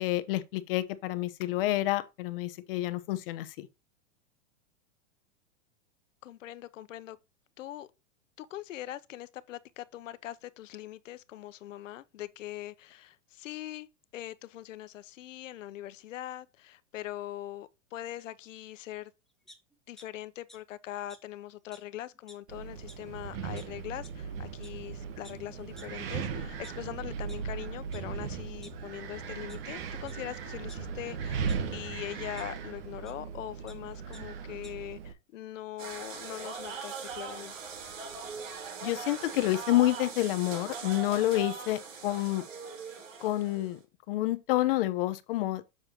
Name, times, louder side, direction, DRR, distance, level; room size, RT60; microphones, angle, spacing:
voice 1, 0.0-3.7 38.8-42.5 43.2-43.8 44.1-45.6, left 16 dB, 50° left, 0.9 m, -29 dB
voice 2, 6.2-7.2 7.6-7.9 8.4-13.9 14.1-19.1 19.9-37.5, left 13 dB, 85° left, 0.9 m, -42 dB
sound 1, 19.5-20.0 20.5-20.6 21.1-21.2 21.7-21.8 22.1-22.5 22.9-23.0 23.6-23.7 24.0-24.1 24.6-24.7 25.2-25.3 25.8-25.9 26.4-27.4 27.9-28.0 28.4-29.1 29.5-29.6 30.0-30.1 30.7-31.6 32.4-32.5 33.0-33.1 33.4-33.7 34.1-34.2 34.5-34.7, left 1 dB, ahead, 0.7 m, -53 dB
Wind, 22.5-35.1, right 6 dB, 50° right, 1.2 m, -38 dB
sound 2, 35.8-43.7, right 5 dB, 85° right, 4.4 m, -41 dB
7.2 x 6.5 x 2.9 m
supercardioid pair, 155°, 37 cm